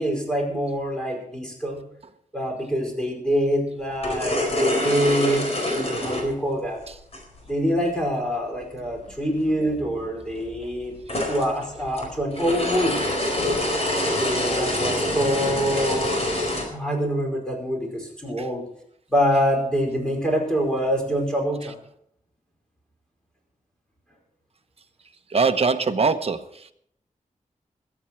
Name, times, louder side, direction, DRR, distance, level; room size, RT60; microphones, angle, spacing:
voice 1, 0.0-1.8 2.3-5.5 5.7-6.8 7.4-11.0 11.2-13.0 14.2-16.1 16.7-18.6 19.1-21.7, equal, 5° left, 0 dB, 4.9 m, -25 dB
sound 1, 3.9-7.4 9.1-9.2 9.5-9.6 10.4-16.6, left 1 dB, 50° left, 4.4 m, -25 dB
voice 2, 25.3-26.7, right 4 dB, 45° right, 8 dB, 1.0 m, -24 dB
22.0 x 8.8 x 4.6 m, 0.70 s
wide cardioid pair, 125°, 14 cm